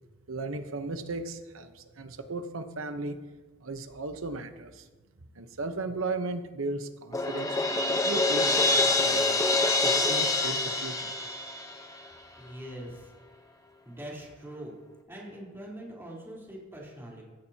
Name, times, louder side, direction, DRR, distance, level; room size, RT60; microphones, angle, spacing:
voice 1, 0.3-3.2 3.6-4.9 5.3-7.5 8.0-9.5 9.8-11.1, right 3 dB, 70° right, 8 dB, 1.0 m, -36 dB
Crash cymbal, 7.1-12.1, left 2 dB, 15° left, 0.9 m, -26 dB
voice 2, 12.4-13.1 13.8-14.7 15.1-17.2, right 1 dB, 10° right, -5 dB, 3.7 m, -42 dB
16.0 x 13.5 x 2.9 m, 1.3 s
head